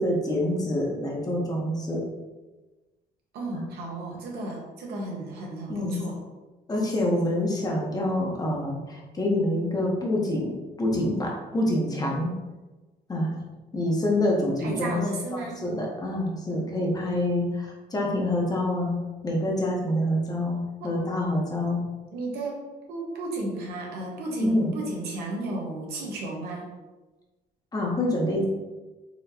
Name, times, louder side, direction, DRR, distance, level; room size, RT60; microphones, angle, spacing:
voice 1, 0.0-2.0 3.5-3.7 5.7-6.0 6.7-10.5 10.8-12.3 13.1-13.3 13.7-15.0 15.3-19.0 19.2-21.8 24.4-24.7 27.7-28.4, left 1 dB, 20° left, -2 dB, 0.9 m, -26 dB
voice 2, 3.3-6.2 14.6-15.6 20.8-20.9 22.1-22.6 22.9-26.7, right 2 dB, 75° right, -1 dB, 1.0 m, -33 dB
4.2 x 3.0 x 2.7 m, 1.2 s
cardioid pair, 110°, 17 cm